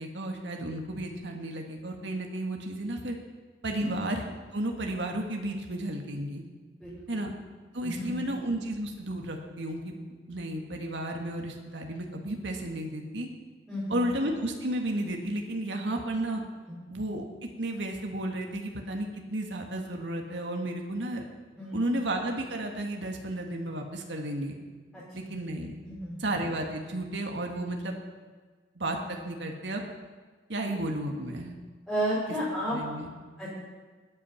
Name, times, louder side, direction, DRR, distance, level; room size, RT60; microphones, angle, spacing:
voice 1, 0.0-3.2 3.6-4.2 4.5-6.4 7.1-7.3 7.7-9.9 10.3-13.3 13.9-16.4 16.9-17.2 17.6-21.2 21.7-24.6 25.1-25.7 26.2-27.9 28.8-29.8 30.5-31.5 32.7-33.1, right 1 dB, 80° right, 2 dB, 1.7 m, -33 dB
voice 2, 6.8-7.2 7.8-8.3 13.7-14.0 16.7-16.8 21.6-21.9 24.9-25.0 25.8-26.2 31.9-32.8 33.4-33.6, equal, ahead, -10 dB, 5.1 m, -32 dB
20.5 x 8.8 x 5.7 m, 1.4 s
head